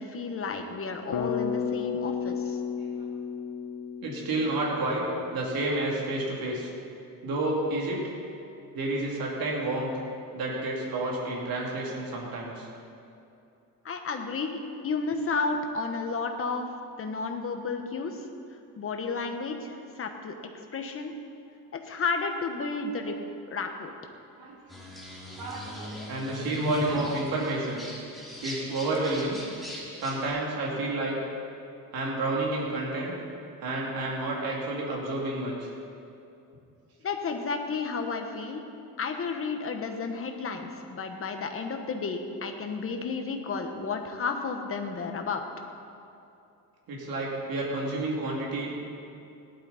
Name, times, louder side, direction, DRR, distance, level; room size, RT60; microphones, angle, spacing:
voice 1, 0.0-2.6 13.8-16.7 17.0-18.2 18.8-20.4 20.7-21.1 21.7-23.2 23.5-23.9 37.0-38.6 39.0-45.4, left 4 dB, 40° left, 4 dB, 1.2 m, -32 dB
Bass guitar, 1.1-5.2, left 7 dB, 65° left, 1.2 m, -33 dB
voice 2, 4.0-5.1 5.3-6.7 7.2-8.0 8.7-9.9 10.3-12.7 24.4-24.9 25.4-27.9 28.4-29.4 30.0-31.2 31.9-33.2 33.6-35.7 46.9-48.8, right 2 dB, 75° right, -3 dB, 2.9 m, -30 dB
sound 1, 24.7-30.3, left 2 dB, ahead, 2.8 m, -39 dB
17.5 x 11.5 x 4.2 m, 2.7 s
cardioid pair, 145°, 36 cm